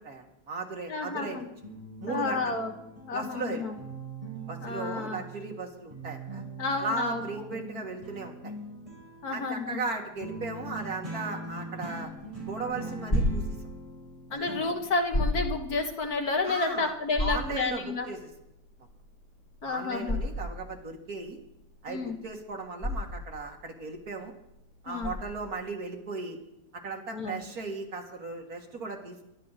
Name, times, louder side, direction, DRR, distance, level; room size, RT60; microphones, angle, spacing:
voice 1, 0.0-1.5 2.0-2.6 3.1-3.6 4.5-6.4 6.8-8.5 9.3-12.1 12.5-13.4 14.3-14.5 16.5-16.9 17.2-18.2 19.6-21.4 21.8-24.3 24.8-26.4 26.8-29.2, right 3 dB, 65° right, 2 dB, 2.5 m, -36 dB
voice 2, 0.9-1.5 2.1-2.7 3.1-3.7 4.6-5.3 6.6-7.2 9.2-9.8 14.3-18.1 19.6-20.2 21.9-22.2 24.9-25.2 27.1-27.4, left 3 dB, 65° left, 4 dB, 2.0 m, -31 dB
sound 1, 1.3-5.6 5.9-14.8, right 2 dB, 20° right, 5.0 m, -42 dB
sound 2, 12.2-25.6, left 1 dB, 25° left, 3.1 m, -33 dB
22.0 x 11.5 x 4.2 m, 0.84 s
omnidirectional pair, 1.7 m